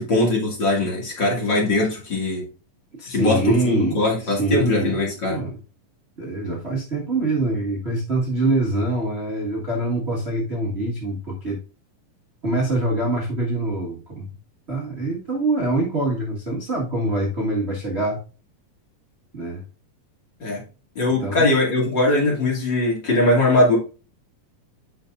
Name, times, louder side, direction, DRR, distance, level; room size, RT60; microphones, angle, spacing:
voice 1, 0.0-2.5 3.1-5.4 20.4-20.6 21.0-23.8, left 2 dB, 35° left, -3 dB, 2.6 m, -21 dB
voice 2, 3.0-5.0 5.3-5.5 6.2-11.6 12.4-14.3 14.7-18.2 19.3-19.6 21.2-21.5, right 2 dB, 40° right, -3 dB, 0.9 m, -24 dB
8.7 x 5.8 x 2.5 m, 0.34 s
omnidirectional pair, 4.0 m